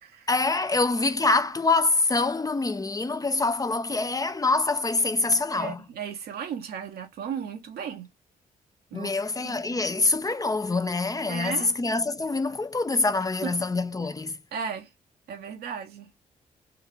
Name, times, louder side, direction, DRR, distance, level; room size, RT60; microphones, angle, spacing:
voice 1, 0.3-5.8 8.9-14.4, left 3 dB, 20° left, 0.5 m, -25 dB
voice 2, 5.5-8.1 8.9-9.1 9.4-9.6 11.2-11.7 13.4-13.5 14.5-14.9 15.3-16.1, right 7 dB, 80° right, 1.0 m, -35 dB
3.6 x 2.4 x 3.1 m
supercardioid pair, 55°, 16 cm